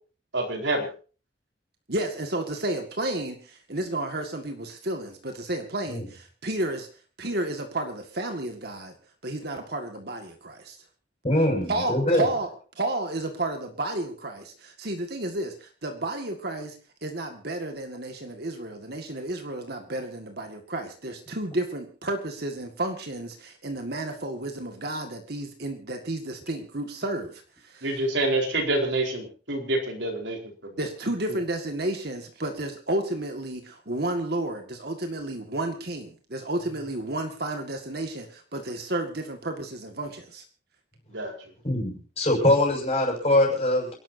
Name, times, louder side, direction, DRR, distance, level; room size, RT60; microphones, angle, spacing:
voice 1, 0.3-0.9 27.8-30.4 30.6-30.7 41.1-41.3, right 2 dB, 70° right, 2 dB, 4.4 m, -27 dB
voice 2, 1.9-6.9 7.2-8.9 9.2-10.8 11.7-12.5 12.8-16.8 17.0-28.0 30.8-40.4, right 1 dB, 50° right, 4 dB, 2.0 m, -32 dB
voice 3, 11.2-12.3 41.6-43.9, left 1 dB, 30° left, 1 dB, 6.5 m, -23 dB
28.5 x 12.0 x 2.8 m, 0.37 s
head